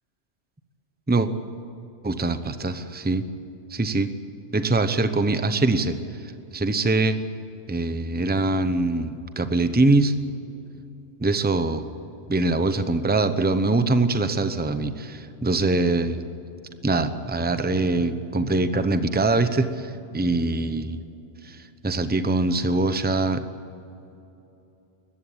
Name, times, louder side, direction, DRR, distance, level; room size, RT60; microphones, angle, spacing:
voice 1, 2.0-3.3 3.7-4.1 4.5-6.0 6.2-7.2 7.7-10.1 11.2-11.8 12.3-16.2 16.8-21.0 21.4-23.4, right 2 dB, 10° right, 10 dB, 0.8 m, -23 dB
21.0 x 15.0 x 8.8 m, 2.9 s
omnidirectional pair, 1.2 m